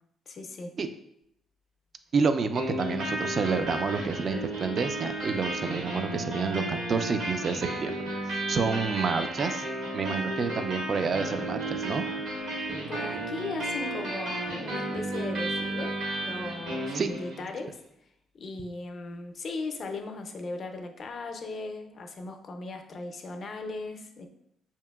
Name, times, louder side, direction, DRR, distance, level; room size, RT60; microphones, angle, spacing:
voice 1, 0.3-0.7 12.5-17.8 18.3-24.3, left 3 dB, 50° left, 4 dB, 0.5 m, -38 dB
voice 2, 2.1-7.9 8.3-9.7 9.9-12.1 16.9-17.1, right 5 dB, 50° right, 9 dB, 0.3 m, -29 dB
sound 1, 2.5-17.5, right 1 dB, 80° right, 1.5 m, -33 dB
4.8 x 2.8 x 2.3 m, 0.77 s
cardioid pair, 90°, 0 cm